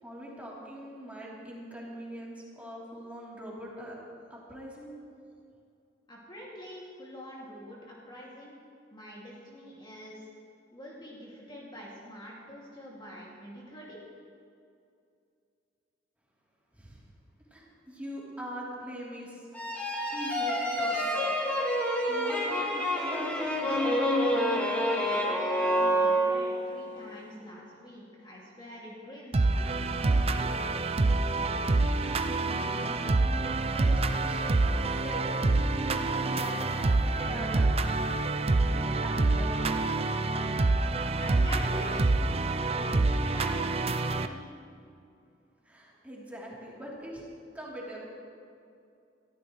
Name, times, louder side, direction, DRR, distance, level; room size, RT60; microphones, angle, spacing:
voice 1, 0.0-4.0 4.3-4.9 16.7-17.0 17.5-19.4 20.1-21.3 22.1-23.9 31.9-33.4 33.7-35.3 35.7-38.3 38.7-40.0 45.6-47.2 47.5-48.0, equal, 10° right, -6 dB, 3.3 m, -42 dB
voice 2, 6.1-8.6 8.9-10.3 10.7-14.0 25.1-30.5 41.2-44.5, equal, 25° left, -5 dB, 2.4 m, -45 dB
sound 1, 19.6-26.7, equal, 10° left, 2.1 m, -28 dB
sound 2, 29.3-44.3, right 2 dB, 30° right, 0.5 m, -27 dB
23.0 x 14.5 x 3.2 m, 2.5 s
head